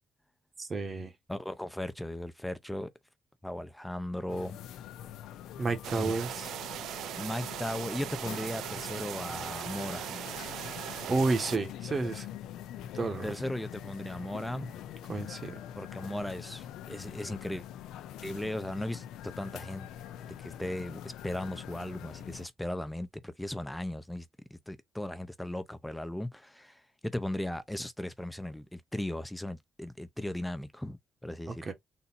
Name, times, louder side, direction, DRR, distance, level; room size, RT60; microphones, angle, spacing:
voice 1, 0.6-1.1 5.6-6.5 11.1-12.3 12.9-13.3 15.1-15.6 31.5-31.7, right 3 dB, 35° right, 1.4 m, -31 dB
voice 2, 1.3-2.9 3.4-4.6 6.0-6.1 7.2-10.2 13.2-14.8 15.8-17.7 18.2-19.9 20.4-24.3 24.5-31.6, left 1 dB, 5° left, 0.6 m, -37 dB
sound 1, 4.3-22.5, left 10 dB, 90° left, 0.6 m, -44 dB
sound 2, 5.8-11.6, right 11 dB, 80° right, 0.3 m, -39 dB
4.1 x 2.7 x 4.2 m
cardioid pair, 95°, 0 cm